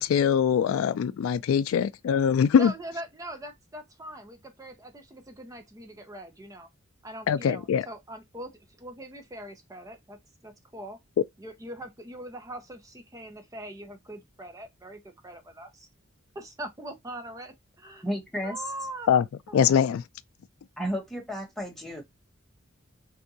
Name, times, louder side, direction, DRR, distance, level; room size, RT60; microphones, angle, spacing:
voice 1, 0.0-2.7 7.3-7.9 19.1-19.2 19.5-20.0, left 7 dB, 85° left, 0.3 m, -22 dB
voice 2, 2.5-6.7 7.0-8.5 8.8-10.2 10.4-11.0 11.4-15.9 16.3-18.1 18.4-19.1 19.5-19.6, right 1 dB, 15° right, 0.6 m, -41 dB
voice 3, 18.0-18.6 20.8-22.0, equal, ahead, 1.1 m, -32 dB
3.4 x 2.7 x 2.6 m
head